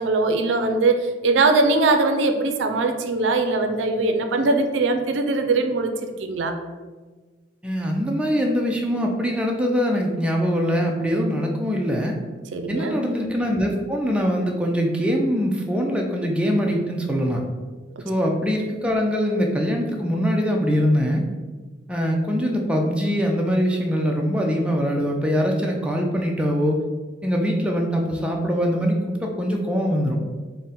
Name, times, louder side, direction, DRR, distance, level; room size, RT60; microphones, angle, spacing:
voice 1, 0.0-6.5 12.5-13.0, right 3 dB, 85° right, 6 dB, 0.4 m, -21 dB
voice 2, 7.6-12.1 12.7-17.4 18.0-21.2 21.9-26.8 27.2-30.2, equal, 5° right, 0 dB, 0.3 m, -23 dB
3.7 x 2.1 x 4.0 m, 1.3 s
head